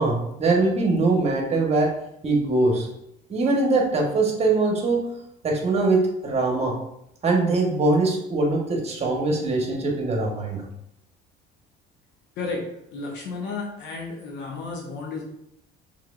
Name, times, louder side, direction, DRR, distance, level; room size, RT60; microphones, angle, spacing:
voice 1, 0.0-1.9 2.2-2.9 3.3-5.1 5.4-6.8 7.2-10.6, right 3 dB, 35° right, 1 dB, 1.3 m, -22 dB
voice 2, 12.9-15.2, left 4 dB, 75° left, -1 dB, 0.9 m, -32 dB
4.7 x 3.6 x 2.5 m, 0.80 s
supercardioid pair, 90°, 19 cm